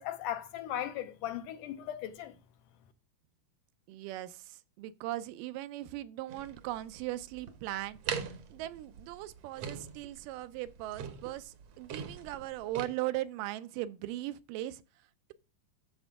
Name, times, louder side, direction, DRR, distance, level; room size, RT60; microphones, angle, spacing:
voice 1, 0.0-2.3, left 11 dB, 75° left, 2.2 m, -37 dB
voice 2, 3.9-14.8, right 15 dB, 85° right, 2.2 m, -39 dB
sound 1, 6.3-12.9, right 7 dB, 65° right, 1.6 m, -42 dB
13.0 x 4.5 x 3.5 m
omnidirectional pair, 3.9 m